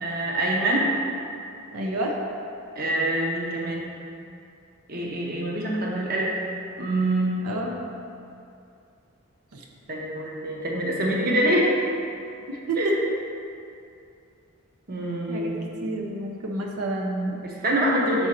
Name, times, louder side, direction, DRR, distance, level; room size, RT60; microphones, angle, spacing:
voice 1, 0.0-0.9 2.8-3.8 4.9-6.4 6.8-7.7 9.9-11.9 12.8-12.9 14.9-15.7 17.4-18.3, right 1 dB, 40° right, -2 dB, 0.7 m, -25 dB
voice 2, 1.7-2.1 7.4-7.7 9.5-9.6 12.5-12.9 15.3-15.5 15.8-17.4, right 1 dB, 90° right, 0 dB, 0.6 m, -29 dB
6.2 x 3.7 x 4.3 m, 2.6 s
head